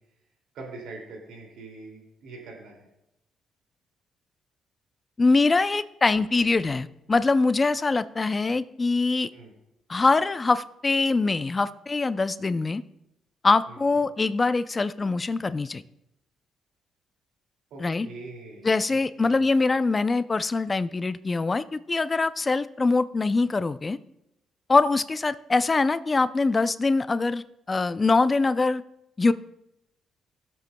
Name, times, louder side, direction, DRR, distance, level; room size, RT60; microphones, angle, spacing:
voice 1, 0.5-2.9 9.3-9.5 13.7-14.0 17.7-19.4, right 3 dB, 85° right, -1 dB, 2.4 m, -43 dB
voice 2, 5.2-9.3 9.9-12.8 13.4-15.8 17.8-18.1 18.6-24.0 24.7-28.8 29.2-29.3, left 3 dB, 25° left, 14 dB, 0.4 m, -23 dB
17.5 x 7.6 x 2.2 m, 0.85 s
cardioid pair, 90°, 0 cm